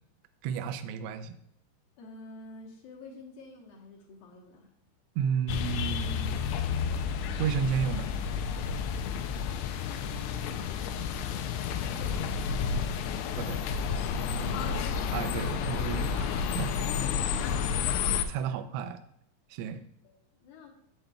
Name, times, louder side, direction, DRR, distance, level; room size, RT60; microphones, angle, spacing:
voice 1, 0.4-1.4 5.2-6.8 7.4-8.1 13.4-13.6 15.1-16.7 18.3-19.0 19.5-19.8, right 7 dB, 85° right, 8 dB, 2.4 m, -32 dB
voice 2, 2.0-4.7 9.8-11.0 11.6-12.5 14.3-14.9 16.8-17.7 18.4-18.5 19.7-20.7, left 4 dB, 70° left, -1 dB, 2.3 m, -47 dB
sound 1, 5.5-18.2, left 7 dB, 85° left, 2.4 m, -31 dB
8.7 x 7.7 x 2.3 m, 0.75 s
omnidirectional pair, 5.4 m